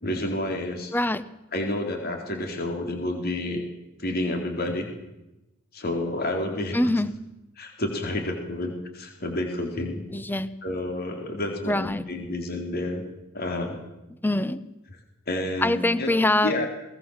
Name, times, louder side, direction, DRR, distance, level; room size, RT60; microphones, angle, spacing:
voice 1, 0.0-0.9 1.5-3.6 4.0-4.9 5.7-6.9 7.6-10.1 10.6-13.0 13.3-13.8 15.3-16.1 16.4-16.7, left 1 dB, 45° left, 3 dB, 4.1 m, -29 dB
voice 2, 0.9-1.2 6.7-7.1 10.1-10.5 11.6-12.0 14.2-14.6 15.6-16.6, left 1 dB, 10° left, 15 dB, 0.8 m, -23 dB
22.5 x 19.5 x 7.4 m, 0.96 s
head